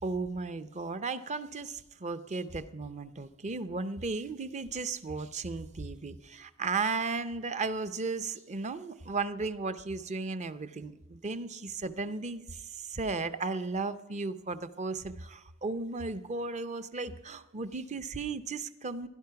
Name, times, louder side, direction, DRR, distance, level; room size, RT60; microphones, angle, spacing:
voice 1, 0.0-19.1, right 3 dB, 35° right, 12 dB, 0.6 m, -35 dB
16.5 x 11.5 x 5.8 m, 1.0 s
head